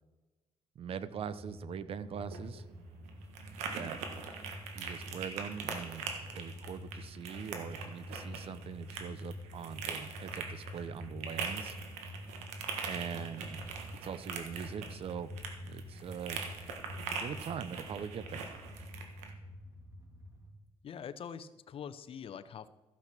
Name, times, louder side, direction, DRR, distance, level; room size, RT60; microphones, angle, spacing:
voice 1, 0.8-2.6 3.7-4.0 4.8-11.8 12.9-13.6 14.0-15.3 15.7-16.4 17.2-18.4, right 7 dB, 55° right, 14 dB, 0.7 m, -42 dB
sound 1, 1.0-20.5, left 1 dB, 30° right, 3.0 m, -48 dB
sound 2, 2.1-19.3, right 5 dB, 90° right, 1.5 m, -42 dB
voice 2, 20.8-22.7, left 7 dB, 55° left, 13 dB, 0.7 m, -44 dB
14.5 x 5.8 x 6.0 m, 1.1 s
supercardioid pair, 75°, 11 cm